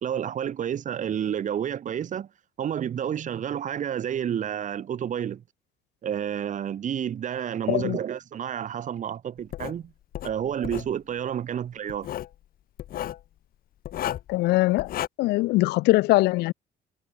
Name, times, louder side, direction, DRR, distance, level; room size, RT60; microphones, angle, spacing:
voice 1, 0.0-2.3 2.6-5.4 6.0-9.9 10.2-12.1, right 9 dB, 50° right, 2.2 m, -30 dB
Writing, 9.5-9.8 10.1-10.9 11.9-12.3 12.8-13.2 13.8-14.3 14.8-15.1, left 12 dB, 60° left, 1.2 m, -33 dB
voice 2, 14.3-14.9 15.2-16.5, left 20 dB, 80° left, 0.5 m, -21 dB
cardioid pair, 110°, 17 cm